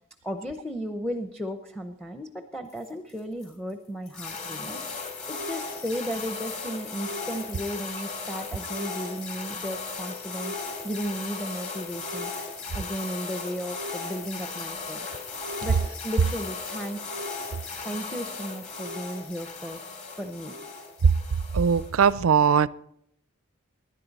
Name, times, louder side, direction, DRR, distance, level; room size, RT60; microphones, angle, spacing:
voice 1, 0.2-10.6 10.8-15.1 15.6-15.8 16.0-17.3 17.8-19.8 20.1-20.6, equal, 5° left, 6 dB, 0.7 m, -35 dB
sound 1, 2.6-8.8 9.1-9.6 10.2-11.2 11.5-11.6 11.8-15.8 16.1-17.9 18.3-18.4, left 5 dB, 55° left, 6.1 m, -55 dB
sound 2, 4.1-22.1, left 4 dB, 35° left, 2.7 m, -36 dB
voice 2, 21.5-22.7, right 6 dB, 80° right, 19 dB, 0.4 m, -20 dB
20.0 x 10.5 x 4.1 m, 0.74 s
head